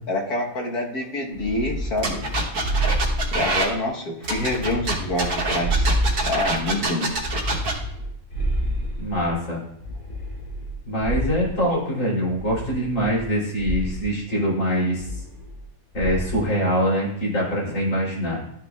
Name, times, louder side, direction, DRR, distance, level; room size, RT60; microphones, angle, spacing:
voice 1, 0.1-2.2 3.3-5.9 6.2-7.1, left 2 dB, 90° left, -1 dB, 1.8 m, -26 dB
sound 1, 1.3-3.8 4.2-6.7 7.1-9.3 9.8-11.7 12.3-13.3 13.6-14.1 14.9-15.7 15.9-16.4, equal, 30° left, 1.4 m, -28 dB
sound 2, 2.0-3.7 4.2-7.7, right 2 dB, 75° right, 1.7 m, -25 dB
voice 2, 9.0-9.6 10.9-15.1 15.9-18.4, equal, 60° left, -6 dB, 3.7 m, -24 dB
12.0 x 6.0 x 2.4 m, 0.75 s
omnidirectional pair, 1.6 m